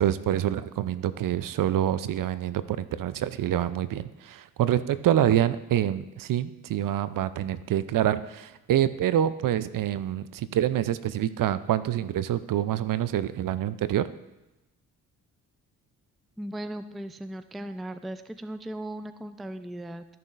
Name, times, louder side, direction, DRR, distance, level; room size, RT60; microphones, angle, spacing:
voice 1, 0.0-14.1, right 11 dB, 50° right, 14 dB, 0.6 m, -26 dB
voice 2, 16.4-20.1, right 1 dB, ahead, 11 dB, 0.4 m, -37 dB
13.5 x 6.7 x 2.5 m, 0.96 s
hypercardioid pair, 45°, 43 cm